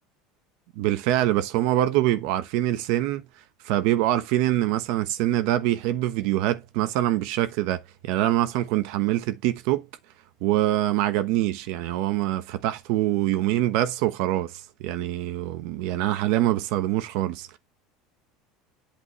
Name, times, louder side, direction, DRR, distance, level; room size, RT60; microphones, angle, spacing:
voice 1, 0.8-3.2 3.6-9.9 10.4-17.6, right 14 dB, 65° right, 1.0 m, -24 dB
8.5 x 5.1 x 3.1 m
cardioid pair, 155°, 0 cm